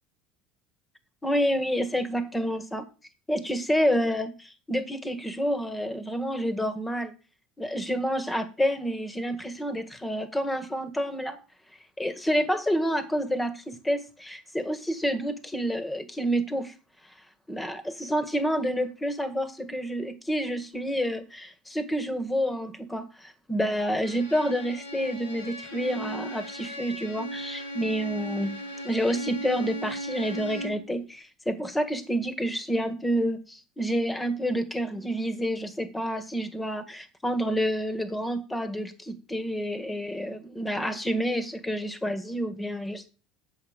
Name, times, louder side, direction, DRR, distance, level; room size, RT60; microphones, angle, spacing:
voice 1, 1.2-2.8 3.3-7.1 7.6-11.4 12.0-16.7 17.5-28.6 28.8-43.1, equal, 10° left, 10 dB, 1.7 m, -29 dB
Bowed string instrument, 24.0-30.9, right 1 dB, 90° left, 1.9 m, -37 dB
7.9 x 6.5 x 5.2 m, 0.34 s
hypercardioid pair, 80°, 0 cm